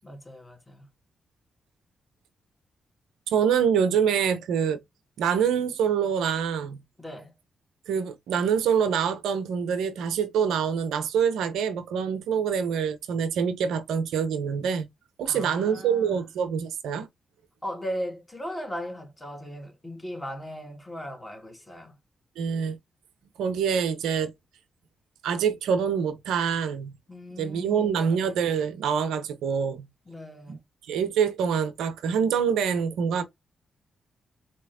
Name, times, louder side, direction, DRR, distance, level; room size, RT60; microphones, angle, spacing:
voice 1, 0.0-0.9 7.0-7.3 15.2-16.3 17.6-21.9 27.1-28.0 30.1-30.6, equal, 15° left, 2.5 m, -38 dB
voice 2, 3.3-4.8 5.2-6.8 7.9-14.9 15.2-17.1 22.4-22.8 23.4-24.3 25.2-27.0 27.4-29.9 30.5-30.6 30.9-33.2, right 7 dB, 85° right, 0.7 m, -25 dB
4.2 x 3.0 x 3.4 m
supercardioid pair, 50°, 0 cm